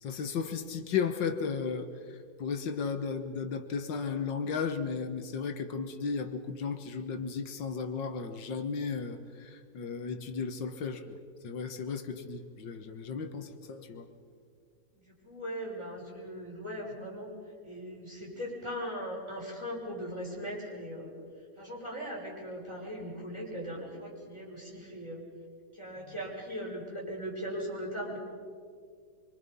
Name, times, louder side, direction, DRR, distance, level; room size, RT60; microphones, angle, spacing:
voice 1, 0.0-11.2 11.4-14.1, left 5 dB, 85° left, 7 dB, 2.0 m, -35 dB
voice 2, 14.9-17.3 17.6-21.2 21.6-25.2 25.7-28.2, equal, 15° right, -4 dB, 6.3 m, -39 dB
25.5 x 25.0 x 5.5 m, 2.1 s
omnidirectional pair, 1.9 m